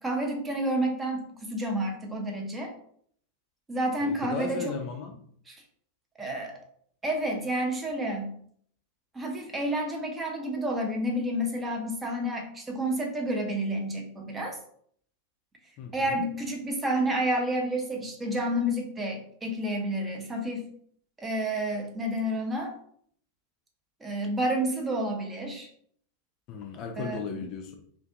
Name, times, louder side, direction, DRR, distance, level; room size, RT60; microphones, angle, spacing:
voice 1, 0.0-2.7 3.7-4.6 5.5-5.6 6.2-6.6 7.0-8.3 9.1-14.6 15.9-20.7 21.2-22.7 24.0-25.7 27.0-27.2, right 1 dB, 15° right, 2 dB, 0.5 m, -30 dB
voice 2, 4.0-5.2 15.8-16.2 26.5-27.7, left 5 dB, 40° left, 3 dB, 0.4 m, -36 dB
2.5 x 2.4 x 2.3 m, 0.63 s
figure-of-eight pair, 90°, 0 cm